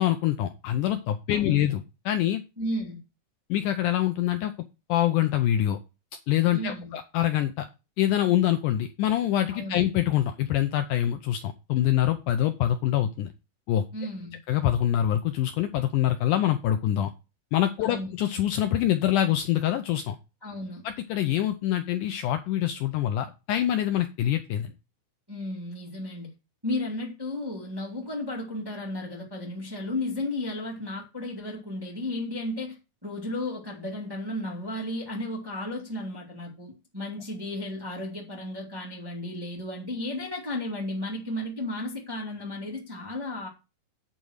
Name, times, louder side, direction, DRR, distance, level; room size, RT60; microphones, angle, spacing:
voice 1, 0.0-2.4 3.5-4.5 4.9-5.8 6.3-7.7 8.0-13.3 13.7-13.8 14.5-17.1 17.5-20.2 20.8-24.7, left 12 dB, 80° left, 1.9 m, -25 dB
voice 2, 1.3-1.7 2.6-3.0 6.5-6.9 9.5-9.8 13.9-14.4 17.8-18.1 20.4-20.8 25.3-26.3 26.6-32.8 33.0-43.5, left 1 dB, 10° right, 1.3 m, -34 dB
8.8 x 4.1 x 6.4 m
omnidirectional pair, 4.1 m